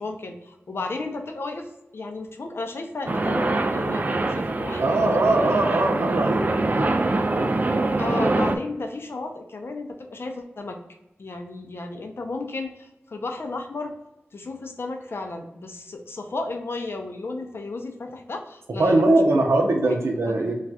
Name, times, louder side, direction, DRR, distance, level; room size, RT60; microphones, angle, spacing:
voice 1, 0.0-5.5 8.0-10.8 11.2-13.9 14.3-19.4 19.8-19.9 20.3-20.5, left 3 dB, 65° left, 4 dB, 0.5 m, -33 dB
sound 1, 3.1-8.6, right 2 dB, 40° right, 0.3 m, -24 dB
voice 2, 4.8-6.9 7.3-7.5 18.8-20.5, right 2 dB, 80° right, 2 dB, 0.6 m, -21 dB
2.4 x 2.3 x 4.0 m, 0.93 s
cardioid pair, 40°, 4 cm